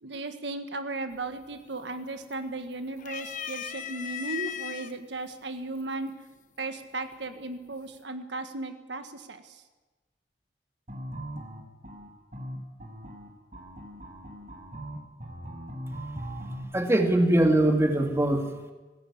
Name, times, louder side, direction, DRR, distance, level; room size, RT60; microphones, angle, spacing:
voice 1, 0.0-6.1 6.6-9.6, right 2 dB, 85° right, 7 dB, 1.5 m, -36 dB
sound 1, 1.1-1.5 1.9-2.6 3.0-4.9 5.8-5.9 7.1-7.6, left 9 dB, 45° left, 1.0 m, -37 dB
sound 2, 10.9-16.6, right 1 dB, 40° right, 5.3 m, -39 dB
voice 2, 16.7-18.7, right 1 dB, 15° right, 4 dB, 2.1 m, -22 dB
20.0 x 16.0 x 8.6 m, 1.2 s
head